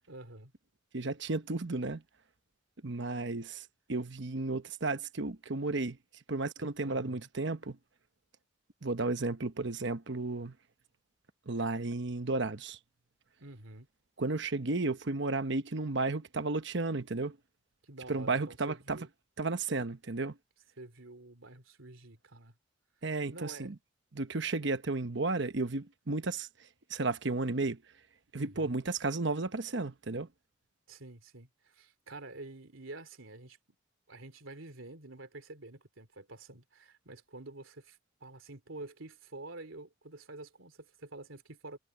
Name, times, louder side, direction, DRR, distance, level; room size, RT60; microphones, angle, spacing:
voice 1, 0.1-0.5 6.8-7.3 13.4-13.9 17.8-19.1 20.8-22.5 23.3-23.7 28.3-28.8 30.9-33.6 34.1-41.8, right 2 dB, 80° right, 3.0 m, -48 dB
voice 2, 0.9-2.0 2.8-6.0 6.3-7.8 8.8-10.5 11.5-12.8 14.2-17.4 18.1-19.0 19.4-20.4 23.0-23.8 24.1-26.5 26.9-27.8 28.3-30.3, right 3 dB, 60° right, 1.1 m, -33 dB
head